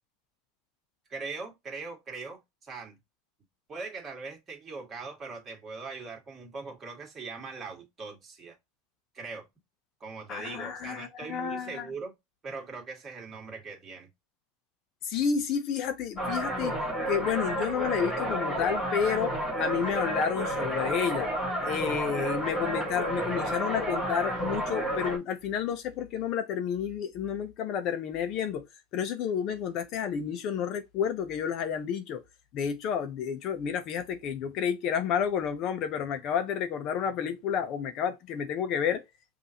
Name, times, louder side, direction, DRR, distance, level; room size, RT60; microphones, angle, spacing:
voice 1, 1.1-3.0 3.7-8.6 9.1-9.5 10.0-12.1 12.4-14.1, right 4 dB, 25° right, 2.1 m, -41 dB
voice 2, 10.3-11.9 15.0-16.8 17.1-21.3 21.6-28.7 28.9-32.2 32.5-39.0, left 7 dB, 45° left, 0.8 m, -30 dB
sound 1, 16.2-25.2, right 1 dB, 20° left, 1.8 m, -31 dB
5.3 x 2.7 x 2.9 m
supercardioid pair, 135°, 0 cm